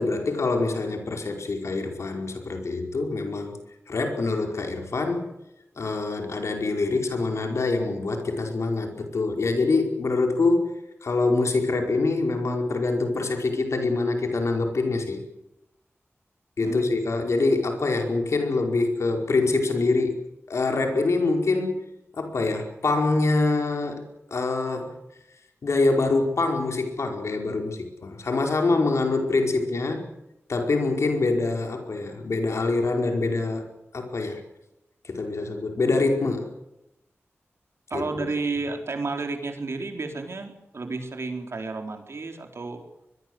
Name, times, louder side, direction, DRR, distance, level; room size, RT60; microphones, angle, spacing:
voice 1, 0.0-3.6 3.9-5.3 5.8-10.7 11.0-15.2 16.6-20.2 20.5-21.8 22.1-24.0 24.3-25.0 25.6-30.1 30.5-33.7 33.9-34.4 35.0-36.5 37.9-38.3, left 3 dB, 85° left, 3 dB, 5.0 m, -25 dB
voice 2, 16.6-16.9 37.9-42.8, right 3 dB, 65° right, 4 dB, 4.3 m, -31 dB
24.0 x 21.5 x 8.1 m, 0.89 s
wide cardioid pair, 105°, 5 cm